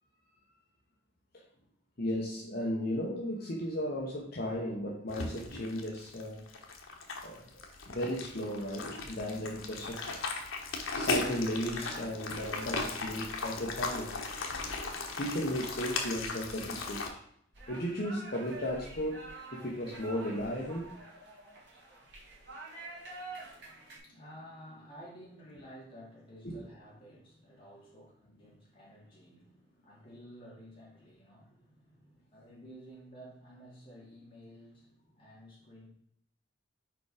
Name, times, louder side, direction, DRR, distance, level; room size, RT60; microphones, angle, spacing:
voice 1, 2.0-6.4 7.2-7.4 7.9-10.2 10.9-14.1 15.2-17.0 17.7-19.2 19.5-20.9 26.4-26.6, equal, 50° left, -3 dB, 1.0 m, -35 dB
sound 1, 5.1-17.1, left 3 dB, 90° left, 1.1 m, -37 dB
sound 2, 17.5-24.0, right 2 dB, 55° right, 1.9 m, -47 dB
voice 2, 23.3-35.9, equal, 25° left, -5 dB, 2.3 m, -53 dB
5.1 x 4.7 x 4.9 m, 0.69 s
head